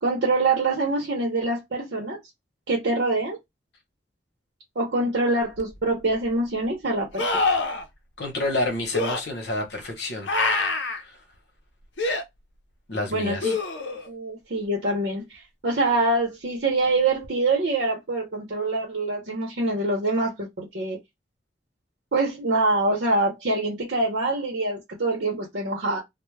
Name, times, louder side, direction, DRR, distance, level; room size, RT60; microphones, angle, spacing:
voice 1, 0.0-2.2 2.7-3.4 4.8-7.2 13.0-13.5 14.1-21.0 22.1-26.0, right 2 dB, 75° right, 0.8 m, -25 dB
sound 1, 5.6-5.7 7.2-7.8 8.9-9.2 10.3-11.0 12.0-12.2 13.4-14.1 17.2-17.3, left 3 dB, 85° left, 0.5 m, -25 dB
voice 2, 8.2-10.4 11.0-11.2 12.9-13.5, left 1 dB, 65° left, 0.9 m, -29 dB
2.2 x 2.1 x 3.1 m
head